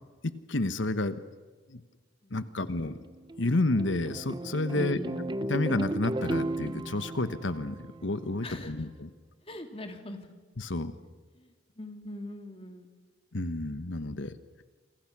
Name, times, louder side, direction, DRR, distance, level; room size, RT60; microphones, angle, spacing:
voice 1, 0.2-1.2 1.7-1.8 2.3-3.0 3.4-5.0 5.5-9.1 10.6-10.9 13.3-14.3, left 2 dB, 85° left, 12 dB, 1.2 m, -30 dB
voice 2, 2.2-2.6 4.7-5.3 8.4-8.8 9.5-10.3 11.3-11.5 11.8-12.9, left 1 dB, 30° left, 5 dB, 2.7 m, -42 dB
sound 1, 2.8-8.4, right 1 dB, 25° right, 0.7 m, -35 dB
28.0 x 25.0 x 6.1 m, 1.4 s
head